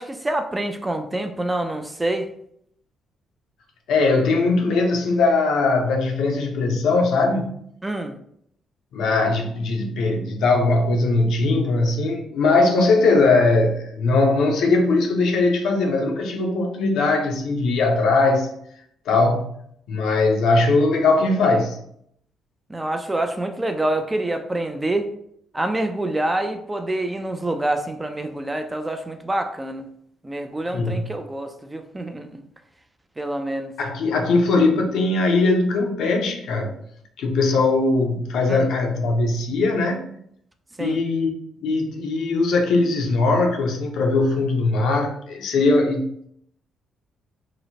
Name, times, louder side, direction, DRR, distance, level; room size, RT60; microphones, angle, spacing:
voice 1, 0.0-2.3 7.8-8.2 22.7-25.1 25.5-29.9 30.2-32.4 33.2-33.7 38.5-38.7 40.8-41.0, right 1 dB, 15° right, 6 dB, 0.3 m, -26 dB
voice 2, 3.9-7.6 8.9-18.5 19.1-19.6 19.9-21.8 30.7-31.1 33.8-36.7 37.2-40.0 40.8-41.3 41.6-46.3, left 3 dB, 80° left, 2 dB, 0.5 m, -20 dB
2.8 x 2.0 x 2.7 m, 0.70 s
cardioid pair, 90°, 0 cm